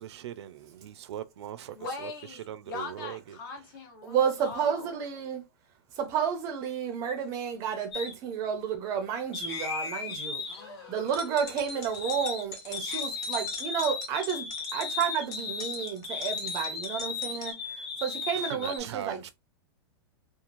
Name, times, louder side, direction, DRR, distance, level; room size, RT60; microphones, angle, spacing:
voice 1, 0.0-3.4 18.4-19.3, right 11 dB, 80° right, 0.4 m, -40 dB
voice 2, 1.7-5.1 10.5-11.1, left 3 dB, 50° left, 1.0 m, -41 dB
voice 3, 4.0-5.4 6.0-10.4 10.9-19.3, right 7 dB, 25° right, 0.5 m, -31 dB
sound 1, 7.9-8.1 9.3-12.4 12.7-18.8, left 5 dB, 70° left, 1.4 m, -36 dB
sound 2, 11.0-17.5, left 2 dB, 30° left, 0.8 m, -42 dB
3.0 x 2.3 x 2.4 m
supercardioid pair, 170°, 14 cm